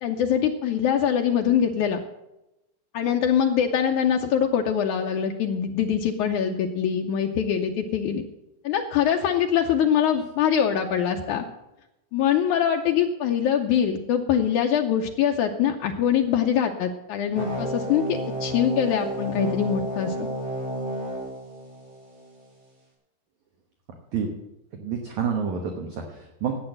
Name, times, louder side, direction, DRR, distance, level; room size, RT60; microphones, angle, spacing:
voice 1, 0.0-2.0 2.9-8.2 8.6-11.4 12.1-20.3, left 8 dB, 85° left, 3 dB, 1.7 m, -23 dB
sound 1, 17.4-22.4, right 1 dB, 30° right, 3.8 m, -31 dB
voice 2, 24.7-26.6, right 6 dB, 60° right, 4 dB, 2.2 m, -28 dB
12.0 x 8.8 x 7.8 m, 0.93 s
omnidirectional pair, 4.5 m